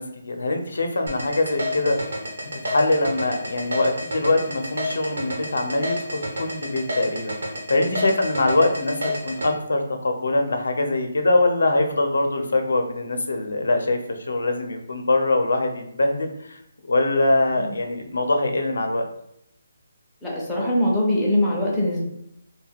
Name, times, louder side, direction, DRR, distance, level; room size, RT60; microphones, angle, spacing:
voice 1, 0.0-2.0 2.6-7.3 7.7-14.0 14.3-19.1, left 2 dB, 80° left, 4 dB, 0.5 m, -23 dB
sound 1, 1.1-9.5, equal, 90° right, 0.9 m, -29 dB
voice 2, 20.2-22.0, left 1 dB, 5° left, -7 dB, 0.4 m, -22 dB
2.3 x 2.2 x 3.4 m, 0.76 s
hypercardioid pair, 180°, 0 cm